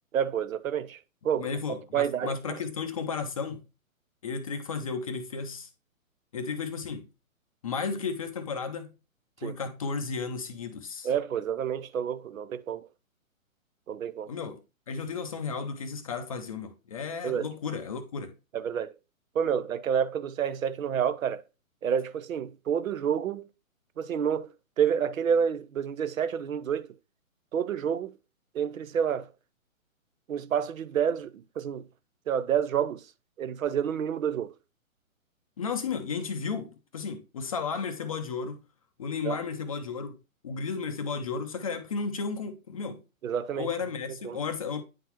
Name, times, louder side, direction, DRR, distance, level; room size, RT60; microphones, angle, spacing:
voice 1, 0.1-1.5 1.9-2.6 9.4-9.6 11.0-12.9 13.9-14.3 17.2-17.5 18.5-18.9 19.3-21.4 21.8-23.5 24.0-27.0 27.5-28.2 28.5-29.3 30.3-31.9 32.3-33.0 33.4-34.5 39.2-39.4 43.2-43.7 44.2-44.4, right 8 dB, 70° right, 0.7 m, -29 dB
voice 2, 1.4-3.6 4.2-5.7 6.3-7.1 7.6-8.9 9.4-11.1 14.3-18.3 35.6-38.6 39.0-40.2 40.4-43.0 43.6-44.8, left 5 dB, 25° left, 0.5 m, -34 dB
9.1 x 3.9 x 2.9 m
hypercardioid pair, 145°, 42 cm